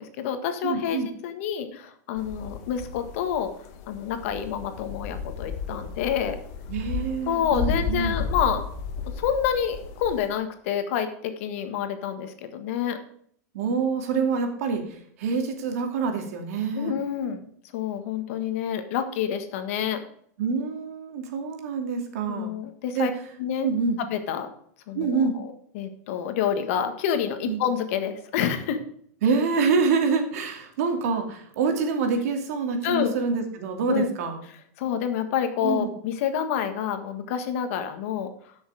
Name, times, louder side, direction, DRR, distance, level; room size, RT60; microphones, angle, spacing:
voice 1, 0.0-3.5 3.9-6.3 7.3-8.6 9.2-13.0 16.7-17.4 17.7-20.1 22.3-23.1 23.4-23.7 24.1-24.5 24.9-28.8 32.8-33.1 33.9-34.1 34.8-38.3, left 8 dB, 55° left, 8 dB, 1.5 m, -28 dB
voice 2, 0.6-1.1 6.7-8.2 13.5-16.9 20.4-22.5 22.9-23.1 23.6-24.0 24.9-25.4 27.5-27.6 29.2-34.4 35.6-35.9, right 5 dB, 65° right, 4 dB, 2.5 m, -26 dB
sound 1, 2.2-10.3, left 5 dB, 40° left, 1.3 m, -33 dB
12.5 x 6.5 x 4.9 m, 0.64 s
supercardioid pair, 160°, 9 cm